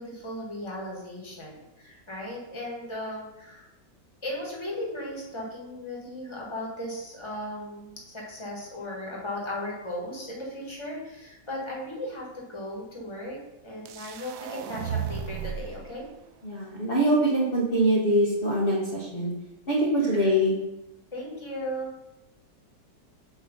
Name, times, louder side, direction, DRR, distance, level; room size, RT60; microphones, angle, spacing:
voice 1, 0.0-3.7 4.2-16.1 20.0-20.3 21.1-21.9, left 1 dB, 15° left, -2 dB, 1.7 m, -36 dB
sound 1, 13.9-15.8, right 7 dB, 75° right, 0.8 m, -34 dB
voice 2, 16.4-19.3 19.7-20.5, right 1 dB, 35° left, -5 dB, 1.3 m, -23 dB
8.7 x 3.2 x 5.3 m, 0.92 s
omnidirectional pair, 1.9 m